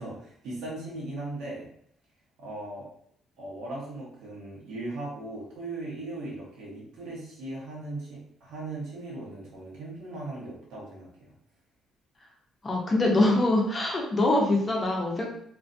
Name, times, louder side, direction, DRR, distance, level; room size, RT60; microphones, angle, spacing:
voice 1, 0.0-1.7 2.4-2.9 3.4-11.3, right 2 dB, 90° right, -5 dB, 1.1 m, -38 dB
voice 2, 12.6-15.3, left 2 dB, 20° left, -1 dB, 0.5 m, -24 dB
2.5 x 2.2 x 2.5 m, 0.66 s
cardioid pair, 160°, 0 cm